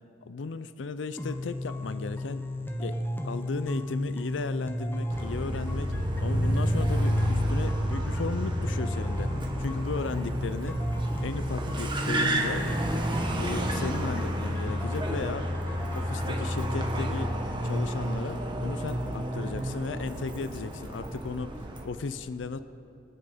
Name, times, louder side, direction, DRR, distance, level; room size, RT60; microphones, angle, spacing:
voice 1, 0.2-2.4 2.8-3.0 3.2-5.9 6.2-9.3 9.6-10.8 11.2-12.7 13.3-15.5 16.0-17.3 17.6-22.6, left 4 dB, 85° left, 12 dB, 0.5 m, -35 dB
sound 1, 1.2-17.2, left 1 dB, 10° left, 0.8 m, -33 dB
Car, 5.1-21.9, right 1 dB, 25° right, 1.5 m, -31 dB
23.5 x 9.1 x 5.1 m, 2.7 s
head